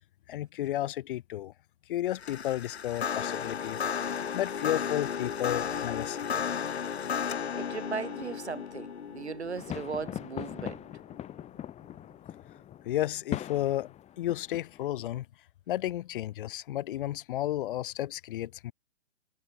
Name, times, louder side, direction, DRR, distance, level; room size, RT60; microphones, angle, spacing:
voice 1, 0.3-1.5 1.9-3.8 4.3-6.4 12.8-15.3 15.7-18.7, left 13 dB, 55° left, 3.9 m, -32 dB
sound 1, 2.1-11.4, left 7 dB, 80° left, 3.4 m, -34 dB
voice 2, 7.5-10.9, right 5 dB, 90° right, 5.0 m, -37 dB
sound 2, 9.6-14.9, left 11 dB, 20° left, 6.0 m, -41 dB
hypercardioid pair, 130°, 32 cm